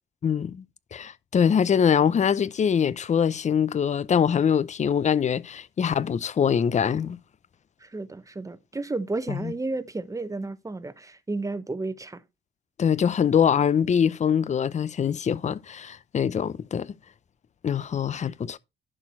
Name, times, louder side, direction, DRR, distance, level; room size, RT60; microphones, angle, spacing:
voice 1, 0.2-0.6 0.9-7.2 9.3-9.5 12.8-16.9 17.6-18.6, left 7 dB, 35° left, 0.6 m, -23 dB
voice 2, 7.8-12.2, right 3 dB, 15° right, 0.9 m, -32 dB
11.0 x 4.4 x 4.4 m
cardioid pair, 90°, 20 cm